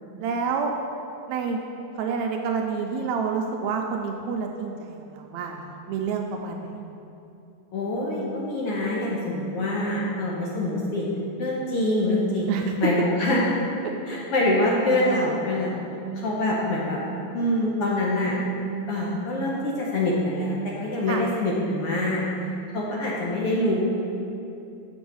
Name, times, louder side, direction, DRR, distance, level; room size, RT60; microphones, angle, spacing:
voice 1, 0.2-0.7 1.3-1.6 2.0-6.7 12.5-12.7 21.1-21.2, right 5 dB, 80° right, 3 dB, 1.7 m, -28 dB
voice 2, 7.7-11.1 11.4-12.5 12.8-13.5 14.1-15.8 16.1-17.0 17.3-18.4 18.9-22.2 22.7-23.8, left 1 dB, 65° left, -4 dB, 1.5 m, -25 dB
7.7 x 6.2 x 5.4 m, 2.8 s
omnidirectional pair, 3.5 m